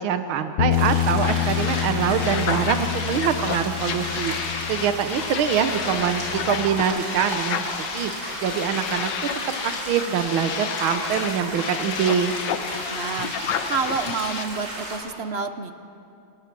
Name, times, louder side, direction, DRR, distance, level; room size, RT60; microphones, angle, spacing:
voice 1, 0.0-8.1 8.4-9.1 9.6-12.4, right 8 dB, 85° right, 8 dB, 1.7 m, -24 dB
Bass guitar, 0.6-6.8, left 11 dB, 85° left, 0.6 m, -28 dB
sound 1, 0.7-15.0, right 1 dB, 65° right, 5.1 m, -34 dB
sound 2, 1.2-14.5, left 8 dB, 70° left, 1.5 m, -31 dB
voice 2, 5.8-6.3 12.8-13.4 13.7-15.7, right 5 dB, 45° right, 9 dB, 0.9 m, -29 dB
28.0 x 19.0 x 6.0 m, 2.7 s
omnidirectional pair, 2.2 m